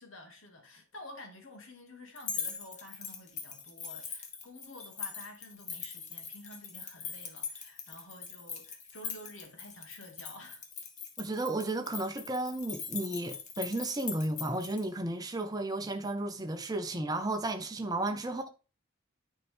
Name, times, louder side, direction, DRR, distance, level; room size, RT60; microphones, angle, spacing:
voice 1, 0.0-10.6 18.1-18.5, left 1 dB, 70° left, 2.1 m, -50 dB
sound 1, 2.2-14.8, left 6 dB, 35° left, 1.2 m, -41 dB
voice 2, 11.2-18.5, right 2 dB, 15° right, 0.8 m, -33 dB
9.7 x 4.7 x 3.4 m
head